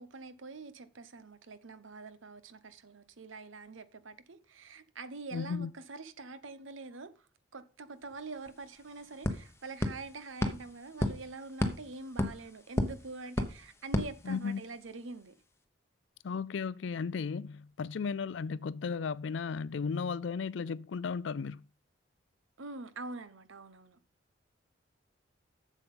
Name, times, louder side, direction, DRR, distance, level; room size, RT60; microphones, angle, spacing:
voice 1, 0.0-7.3 7.5-15.3 22.6-24.0, right 3 dB, 80° right, 1.0 m, -45 dB
voice 2, 5.3-5.7 14.2-14.6 16.2-21.6, left 5 dB, 70° left, 0.4 m, -35 dB
sound 1, 8.1-8.2 8.5-14.9, left 1 dB, 15° left, 0.9 m, -35 dB
7.7 x 7.4 x 5.5 m
head